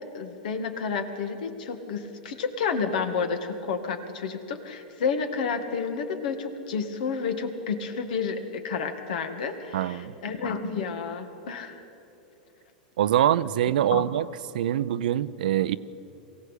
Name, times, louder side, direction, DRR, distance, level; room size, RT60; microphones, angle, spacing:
voice 1, 0.1-11.8 13.9-14.1, left 5 dB, 75° left, 7 dB, 2.1 m, -30 dB
voice 2, 9.7-10.1 13.0-14.2 14.5-15.8, right 12 dB, 80° right, 15 dB, 0.6 m, -24 dB
23.0 x 16.0 x 8.4 m, 2.9 s
hypercardioid pair, 120°, 5 cm